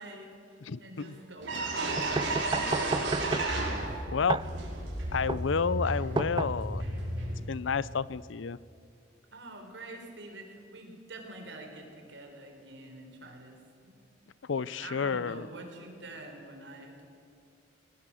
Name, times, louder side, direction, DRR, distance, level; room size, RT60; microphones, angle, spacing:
voice 1, 0.0-3.3 9.3-13.6 13.8-13.9 14.7-17.0, right 2 dB, 70° right, 3 dB, 4.5 m, -46 dB
voice 2, 0.6-1.1 4.1-4.4 5.1-6.8 7.5-8.6 14.5-15.5, left 5 dB, 80° left, 20 dB, 0.5 m, -30 dB
sound 1, 1.0-1.1 1.4-4.1 4.4-7.4, right 2 dB, 90° right, 5.2 m, -33 dB
sound 2, 2.0-7.0, right 3 dB, 25° right, 0.4 m, -33 dB
21.0 x 19.0 x 7.7 m, 2.5 s
head